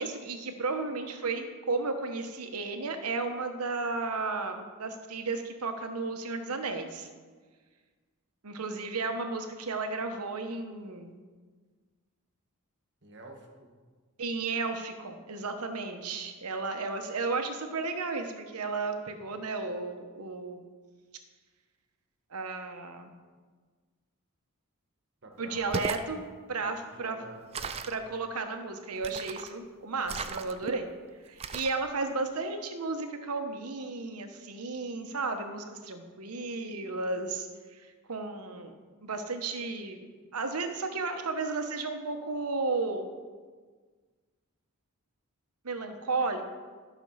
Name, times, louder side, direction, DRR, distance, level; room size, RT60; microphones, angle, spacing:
voice 1, 0.0-7.1 8.4-11.2 14.2-20.6 22.3-23.1 25.4-26.2 26.5-27.2 27.9-30.9 31.2-37.8 38.1-38.8 39.0-40.1 40.3-43.1 45.6-46.4, right 3 dB, 80° right, 6 dB, 1.1 m, -33 dB
voice 2, 13.0-13.7 25.2-25.8 26.6-27.9, right 2 dB, 55° right, 2 dB, 1.5 m, -49 dB
sound 1, 25.6-26.1 27.5-28.0 29.0-29.5 30.1-30.8 31.4-31.8, right 4 dB, 25° right, 0.4 m, -36 dB
12.5 x 6.2 x 5.6 m, 1.5 s
head